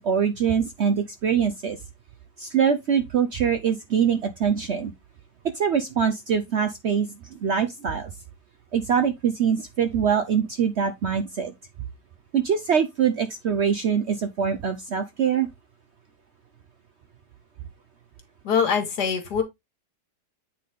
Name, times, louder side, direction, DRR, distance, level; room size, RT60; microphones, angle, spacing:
voice 1, 0.0-1.8 2.4-4.9 5.5-8.1 8.7-11.5 12.3-15.5, right 7 dB, 60° right, 0.7 m, -24 dB
voice 2, 18.4-19.4, left 6 dB, 75° left, 1.9 m, -23 dB
8.4 x 3.9 x 3.5 m
omnidirectional pair, 1.8 m